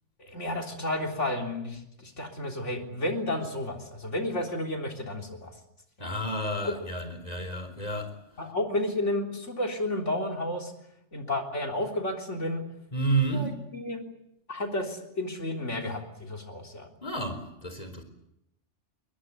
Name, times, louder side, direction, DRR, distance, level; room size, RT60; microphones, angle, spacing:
voice 1, 0.2-5.5 6.0-6.1 6.6-6.7 8.4-10.7 11.1-12.6 13.3-14.1 14.5-16.9, left 1 dB, 75° left, 3.9 m, -32 dB
voice 2, 6.0-8.1 12.9-13.6 17.0-18.0, right 2 dB, 30° left, 4.1 m, -30 dB
22.0 x 21.5 x 9.7 m
omnidirectional pair, 1.2 m